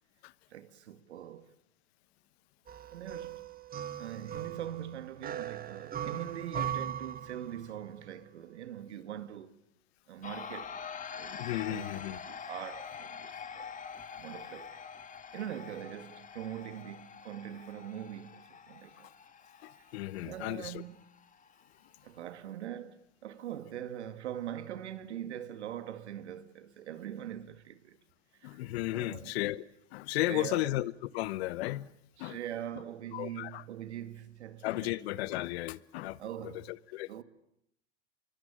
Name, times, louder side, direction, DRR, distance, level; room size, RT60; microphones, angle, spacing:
voice 1, 0.5-1.5 2.9-3.5 4.0-9.6 10.1-13.7 14.2-14.8 15.3-19.1 19.8-19.9 20.2-21.1 22.0-28.0 28.3-28.6 28.9-29.3 30.1-30.7 32.2-35.0 35.3-35.4 36.2-36.7 37.1-37.2, right 10 dB, 85° right, 2.1 m, -43 dB
sound 1, 2.7-7.9, right 10 dB, 25° right, 1.4 m, -39 dB
sound 2, 10.2-22.2, left 6 dB, 25° left, 2.4 m, -46 dB
voice 2, 11.3-12.2 19.6-20.8 28.4-29.6 29.9-31.9 32.2-32.4 33.1-33.6 34.6-36.2 36.4-37.1, left 16 dB, 70° left, 1.2 m, -34 dB
27.0 x 23.0 x 8.8 m
hypercardioid pair, 100°, 33 cm